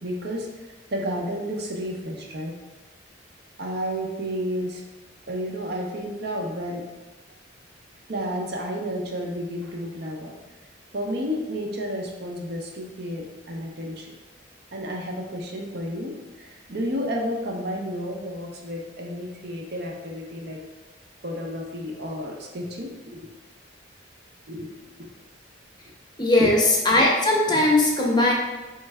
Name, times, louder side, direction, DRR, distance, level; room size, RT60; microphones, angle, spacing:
voice 1, 0.0-0.5 0.9-2.5 3.6-4.8 5.3-6.9 8.1-10.3 10.9-14.1 14.7-20.6 21.2-23.2 24.5-24.7 25.0-25.1 26.4-26.5, equal, 55° right, 0 dB, 0.7 m, -31 dB
voice 2, 26.2-28.3, left 2 dB, 20° left, -1 dB, 0.6 m, -19 dB
4.5 x 3.2 x 3.4 m, 1.1 s
head